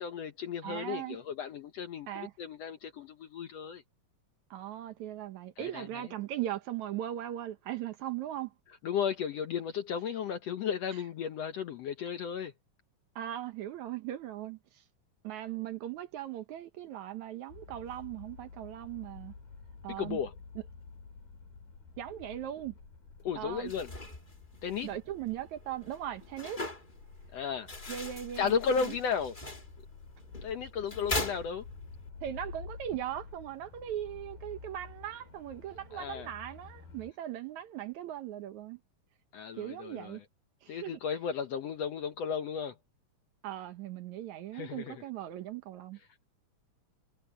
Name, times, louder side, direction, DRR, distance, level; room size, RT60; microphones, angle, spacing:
voice 1, 0.0-3.8 5.6-6.1 8.8-12.5 19.9-20.3 23.2-23.9 24.6-24.9 27.3-27.7 28.4-29.4 30.4-31.7 35.9-36.3 39.3-40.2 40.7-42.8 44.5-45.0, left 7 dB, 65° left, 1.7 m, -34 dB
voice 2, 0.6-1.2 2.1-2.3 4.5-8.5 13.2-14.8 15.2-19.3 19.8-20.2 22.0-22.7 23.4-23.7 24.8-26.6 27.9-28.5 28.8-29.0 32.2-38.8 39.6-40.2 40.6-41.0 43.4-46.0, right 12 dB, 70° right, 2.1 m, -39 dB
sound 1, 17.5-37.1, left 4 dB, 85° left, 6.7 m, -50 dB
sound 2, 23.5-32.1, left 2 dB, 15° left, 1.9 m, -41 dB
omnidirectional pair, 3.9 m